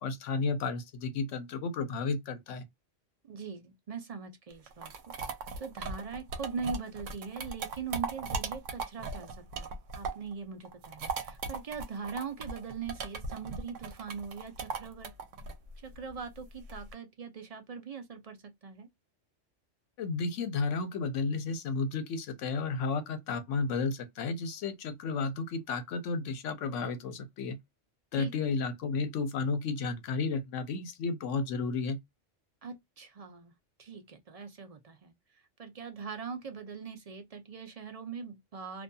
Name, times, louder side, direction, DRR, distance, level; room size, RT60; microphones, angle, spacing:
voice 1, 0.0-2.7 20.0-27.6 28.1-32.0, left 4 dB, 75° left, 1.0 m, -32 dB
voice 2, 3.2-5.2 5.6-15.1 15.8-18.9 28.2-28.6 32.6-33.5 33.8-38.8, right 5 dB, 50° right, 0.4 m, -41 dB
sound 1, 4.5-10.3 10.6-16.9, right 4 dB, 80° right, 1.0 m, -38 dB
2.6 x 2.5 x 2.2 m
omnidirectional pair, 1.3 m